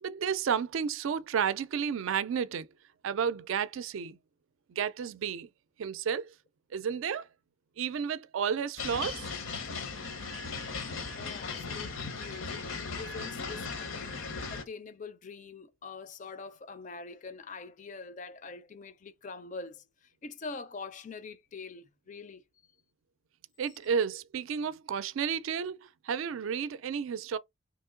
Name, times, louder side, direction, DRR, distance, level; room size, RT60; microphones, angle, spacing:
voice 1, 0.0-2.7 3.0-4.2 4.8-5.5 5.8-6.3 6.7-7.3 7.8-9.3 23.6-27.4, right 7 dB, 75° right, 0.4 m, -32 dB
sound 1, 8.8-14.6, left 4 dB, 75° left, 0.8 m, -37 dB
voice 2, 11.1-14.2 14.5-19.8 20.2-22.4, left 4 dB, 35° left, 0.4 m, -44 dB
3.0 x 2.8 x 3.7 m
head